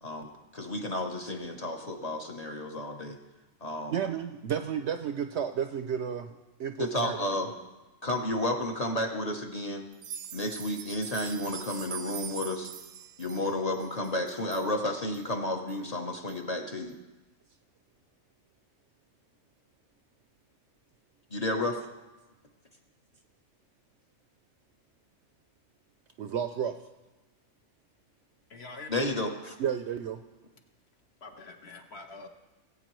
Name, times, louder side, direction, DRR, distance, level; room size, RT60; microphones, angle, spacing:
voice 1, 0.0-3.2 3.6-3.9 6.8-7.5 8.0-9.9 10.3-12.7 13.2-17.0 21.3-21.8 28.9-29.6, left 1 dB, 35° left, 3 dB, 0.8 m, -32 dB
voice 2, 3.9-6.3 6.6-7.5 26.2-26.8 29.6-30.2, right 8 dB, 65° right, 7 dB, 0.7 m, -32 dB
sound 1, 9.9-14.7 15.1-15.2 15.7-15.8 16.3-16.4, right 8 dB, 90° right, 1.1 m, -42 dB
voice 3, 28.5-29.0 31.2-32.3, left 3 dB, 50° left, 4 dB, 1.1 m, -45 dB
19.0 x 8.5 x 3.1 m, 1.1 s
omnidirectional pair, 1.5 m